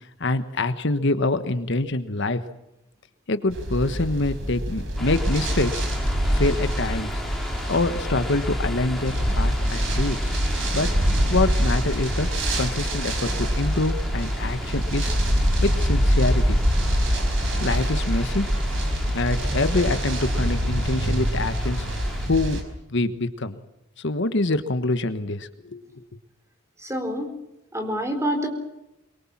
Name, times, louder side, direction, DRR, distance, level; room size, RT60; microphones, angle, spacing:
voice 1, 0.2-2.4 3.3-5.8 6.3-7.2 7.7-10.3 10.7-12.3 12.6-15.1 15.6-16.6 17.6-18.5 19.1-22.6 22.9-23.6 24.0-26.0, left 2 dB, 60° left, 11 dB, 1.3 m, -25 dB
sound 1, 3.5-22.6, equal, 60° right, 5.1 m, -24 dB
sound 2, 5.0-22.3, left 1 dB, ahead, 3.8 m, -36 dB
voice 2, 26.8-27.3 27.7-28.5, equal, 15° right, 7 dB, 4.0 m, -26 dB
24.0 x 23.0 x 7.4 m, 0.89 s
head